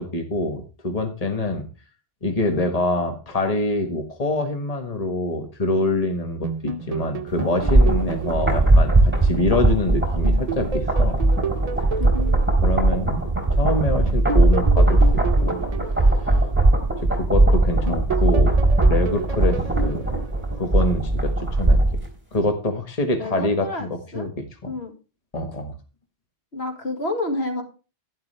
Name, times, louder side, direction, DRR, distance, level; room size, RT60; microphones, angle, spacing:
voice 1, 0.0-1.7 2.2-11.2 12.6-13.3 13.6-15.0 15.4-15.6 16.0-16.4 17.1-18.6 18.9-20.1 20.6-21.8 22.3-24.7 25.3-25.8, left 1 dB, 35° left, 5 dB, 1.7 m, -25 dB
sound 1, 6.4-9.8 10.2-13.5 14.1-17.4 17.9-21.1, right 4 dB, 40° right, 0.7 m, -32 dB
sound 2, 7.4-22.1 22.4-22.5, right 2 dB, 10° right, 3.9 m, -19 dB
voice 2, 23.2-24.3 24.7-24.9 26.5-27.6, left 2 dB, 70° left, 4 dB, 2.4 m, -29 dB
11.5 x 10.5 x 3.4 m, 0.32 s
omnidirectional pair, 1.1 m